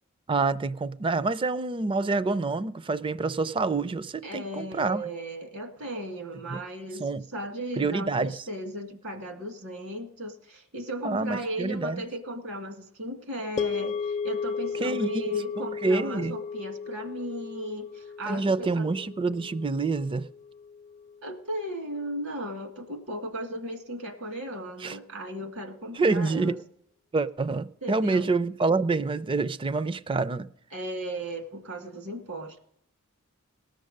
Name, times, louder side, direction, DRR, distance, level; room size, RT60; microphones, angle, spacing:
voice 1, 0.3-5.1 6.5-6.6 7.0-7.2 7.8-8.4 11.0-12.0 14.8-15.3 15.6-16.4 18.3-20.3 24.8-25.0 25.9-26.6 27.1-30.5, right 3 dB, 25° right, 0.4 m, -27 dB
voice 2, 4.2-7.0 7.3-18.9 21.2-26.6 27.8-28.3 30.7-32.6, right 1 dB, 75° right, 2.0 m, -36 dB
sound 1, 13.6-21.9, left 5 dB, 35° left, 0.4 m, -35 dB
18.5 x 6.5 x 6.6 m
head